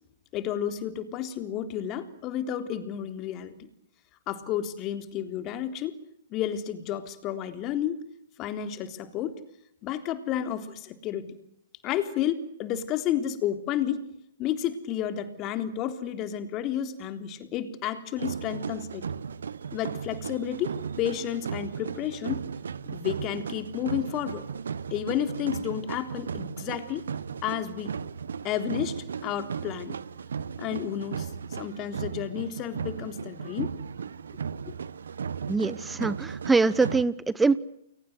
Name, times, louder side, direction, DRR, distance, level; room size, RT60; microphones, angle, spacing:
voice 1, 0.3-3.6 4.3-6.0 6.3-8.0 8.4-9.4 9.8-11.3 11.8-14.1 14.4-19.1 19.7-22.5 22.9-24.4 24.9-27.1 27.4-27.9 28.4-30.0 30.6-33.8, left 10 dB, 30° left, 9 dB, 3.6 m, -31 dB
sound 1, 18.2-37.0, right 6 dB, 75° right, 1.3 m, -36 dB
voice 2, 35.5-37.6, right 4 dB, 10° right, 18 dB, 1.1 m, -24 dB
30.0 x 23.0 x 8.1 m, 0.74 s
hypercardioid pair, 130°, 0 cm